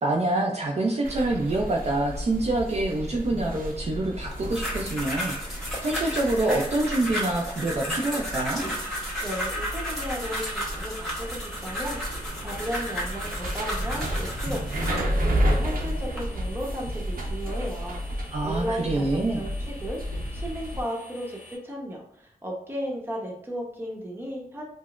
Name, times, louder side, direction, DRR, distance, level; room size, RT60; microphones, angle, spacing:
voice 1, 0.0-8.6 18.3-19.4, right 2 dB, 45° right, -1 dB, 0.5 m, -26 dB
sound 1, 1.0-20.8, equal, 75° right, 0.8 m, -32 dB
sound 2, 4.3-15.1 15.7-16.2, equal, ahead, 1.3 m, -33 dB
sound 3, 8.7-21.5, left 2 dB, 55° left, 1.2 m, -49 dB
voice 2, 9.2-24.6, equal, 15° right, -1 dB, 0.9 m, -35 dB
4.9 x 2.0 x 2.4 m, 0.75 s
wide cardioid pair, 110°, 15 cm